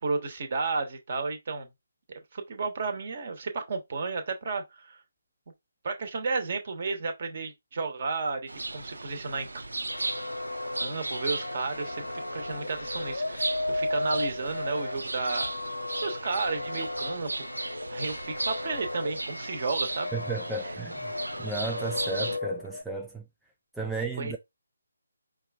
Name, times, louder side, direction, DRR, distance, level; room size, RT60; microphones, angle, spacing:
voice 1, 0.0-1.7 2.3-5.0 5.8-9.5 10.8-15.5 16.0-20.1 20.6-20.7 23.8-23.9 24.2-24.4, right 4 dB, 45° right, 1.1 m, -33 dB
sound 1, 8.5-22.4, right 2 dB, 75° right, 0.6 m, -36 dB
sound 2, 9.9-22.8, left 2 dB, 85° left, 0.6 m, -35 dB
voice 2, 20.1-21.1 21.4-23.2 23.8-24.4, right 3 dB, ahead, 0.4 m, -34 dB
4.9 x 2.4 x 3.4 m
figure-of-eight pair, 150°, 0 cm